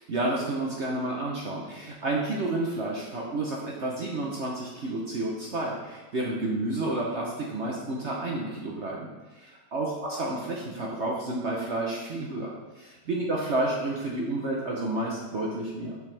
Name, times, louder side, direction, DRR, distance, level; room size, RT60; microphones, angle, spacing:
voice 1, 0.1-16.0, right 2 dB, 50° right, -2 dB, 1.0 m, -30 dB
6.7 x 6.4 x 3.3 m, 1.2 s
omnidirectional pair, 1.8 m